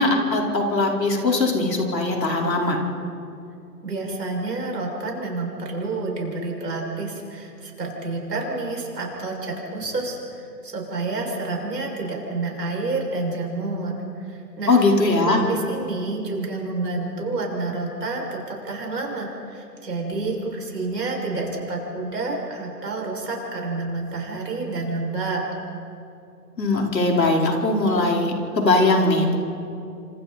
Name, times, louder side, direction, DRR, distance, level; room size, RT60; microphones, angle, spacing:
voice 1, 0.0-2.8 14.7-15.4 26.6-29.4, left 2 dB, 85° left, 0 dB, 4.9 m, -20 dB
voice 2, 3.8-14.0 14.3-14.8 15.2-25.4, right 3 dB, 80° right, -1 dB, 6.8 m, -29 dB
28.0 x 26.5 x 4.4 m, 2.7 s
hypercardioid pair, 140°, 49 cm